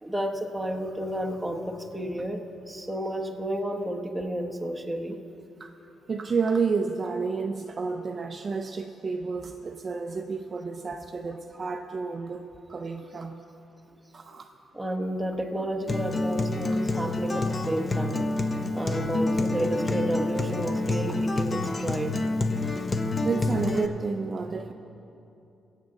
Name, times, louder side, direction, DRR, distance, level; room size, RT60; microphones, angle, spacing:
voice 1, 0.0-5.2 14.7-18.2 18.7-22.2, right 1 dB, 5° right, 1 dB, 1.0 m, -31 dB
voice 2, 6.1-13.4 14.1-14.5 16.7-16.8 23.2-24.7, right 5 dB, 35° right, 5 dB, 0.5 m, -30 dB
Acoustic guitar, 15.9-23.9, left 2 dB, 30° left, 0.7 m, -28 dB
22.5 x 8.3 x 3.8 m, 2.8 s
cardioid pair, 115°, 0 cm